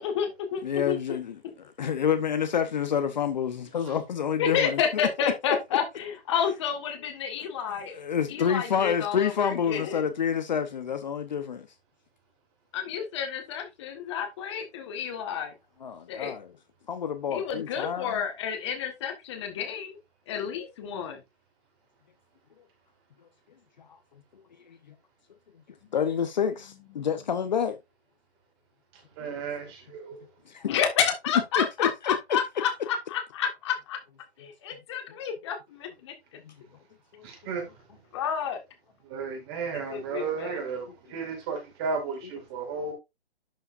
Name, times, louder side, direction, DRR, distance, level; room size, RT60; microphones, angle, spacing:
voice 1, 0.0-1.0 4.4-8.0 8.3-10.0 12.7-15.5 16.1-16.3 17.3-20.0 20.3-21.2 30.6-34.0 34.4-36.1 38.1-38.6 39.7-40.6, left 7 dB, 25° left, 1.7 m, -30 dB
voice 2, 0.6-4.8 7.9-11.7 15.8-16.5 16.9-18.2 25.9-27.8 30.5-30.7 31.6-32.1 36.5-36.6 37.1-37.2, left 7 dB, 40° left, 0.9 m, -28 dB
voice 3, 29.2-30.2 37.2-37.6 39.1-42.9, right 5 dB, 20° right, 2.2 m, -33 dB
11.5 x 5.6 x 2.6 m
figure-of-eight pair, 150°, 33 cm